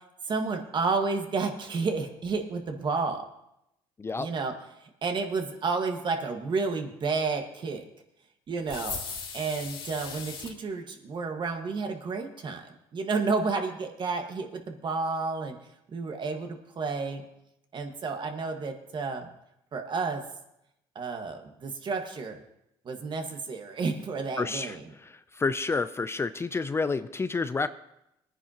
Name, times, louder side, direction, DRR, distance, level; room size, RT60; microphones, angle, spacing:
voice 1, 0.2-3.2 4.2-4.5 4.8-7.8 8.5-9.0 9.3-15.6 15.9-17.2 17.7-19.3 19.7-20.2 20.9-22.4 22.8-24.9, right 4 dB, 45° right, 4 dB, 1.6 m, -31 dB
voice 2, 4.0-4.3 24.4-24.8 25.0-27.7, left 4 dB, 25° left, 12 dB, 0.5 m, -29 dB
sound 1, 8.7-10.5, left 5 dB, 55° left, 3.0 m, -38 dB
19.5 x 9.9 x 2.9 m, 0.83 s
supercardioid pair, 80°, 11 cm